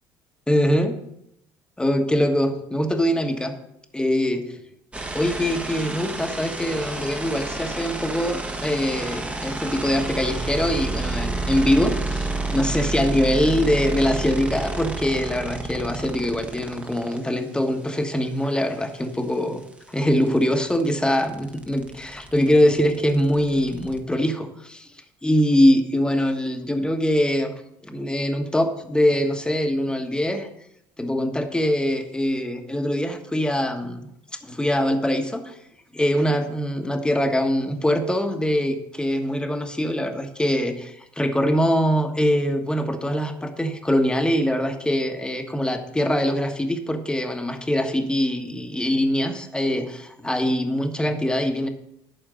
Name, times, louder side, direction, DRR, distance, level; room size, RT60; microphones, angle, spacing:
voice 1, 0.5-0.9 1.8-3.5 3.9-4.6 5.1-19.6 19.9-24.9 25.2-27.5 27.8-30.5 31.0-34.1 34.4-35.6 35.9-51.7, equal, 10° left, 6 dB, 1.3 m, -23 dB
sound 1, 4.9-17.2 19.3-19.4 19.6-24.0, right 2 dB, 15° right, 1.2 m, -30 dB
11.5 x 4.4 x 6.4 m, 0.78 s
supercardioid pair, 75°, 10 cm